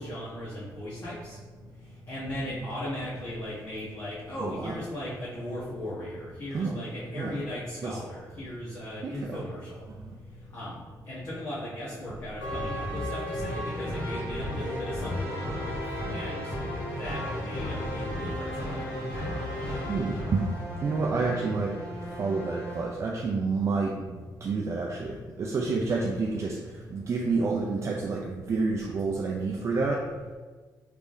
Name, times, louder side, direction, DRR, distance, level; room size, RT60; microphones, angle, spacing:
voice 1, 0.0-1.4 1.8-9.9 10.3-10.8 11.0-18.9, left 1 dB, 45° left, -10 dB, 1.2 m, -38 dB
voice 2, 4.4-4.7 6.5-6.8 7.1-7.4 7.8-8.0 9.0-9.4 19.9-20.4 20.8-21.7 22.2-26.6 26.9-30.0, right 4 dB, 45° right, -1 dB, 0.4 m, -29 dB
sound 1, 12.4-22.9, left 1 dB, 75° left, 1.2 m, -34 dB
3.5 x 3.3 x 2.6 m, 1.4 s
cardioid pair, 105°, 7 cm